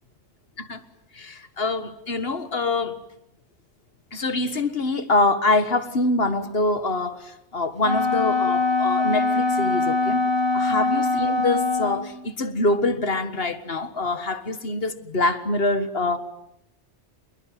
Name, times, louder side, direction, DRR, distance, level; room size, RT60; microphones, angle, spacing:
voice 1, 1.1-3.0 4.1-10.2 10.5-16.2, left 2 dB, 55° left, 1.9 m, -25 dB
Wind instrument woodwind instrument, 7.8-12.1, left 3 dB, 20° right, 1.6 m, -22 dB
27.0 x 21.5 x 9.3 m
omnidirectional pair, 1.2 m